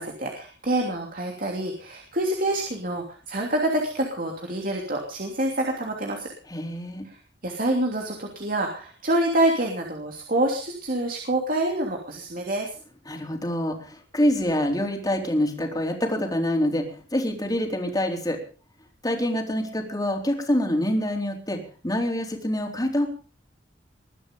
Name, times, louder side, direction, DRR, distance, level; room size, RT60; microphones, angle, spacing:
voice 1, 0.0-6.3 7.4-12.7, right 1 dB, 50° right, 1 dB, 3.0 m, -26 dB
voice 2, 6.5-7.1 13.1-18.4 19.0-23.1, left 1 dB, 20° left, 3 dB, 3.9 m, -26 dB
21.5 x 11.5 x 5.4 m, 0.39 s
head